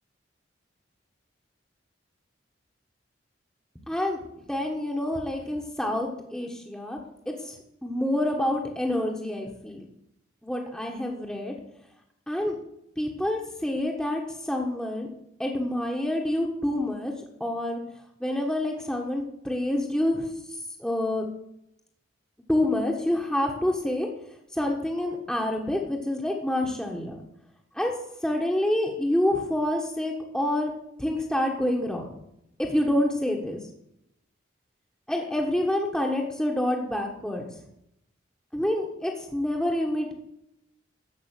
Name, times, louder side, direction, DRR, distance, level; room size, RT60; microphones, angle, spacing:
voice 1, 3.9-4.2 4.5-7.0 7.3-7.5 7.8-9.8 10.4-11.5 12.3-12.6 13.0-15.1 15.4-17.1 17.4-17.8 18.2-20.3 20.8-21.3 22.5-24.1 24.5-27.2 27.7-27.9 28.2-30.7 31.0-32.1 32.6-33.6 35.1-37.4 38.5-40.1, left 1 dB, 5° left, 0 dB, 1.3 m, -27 dB
14.0 x 5.5 x 9.1 m, 0.78 s
head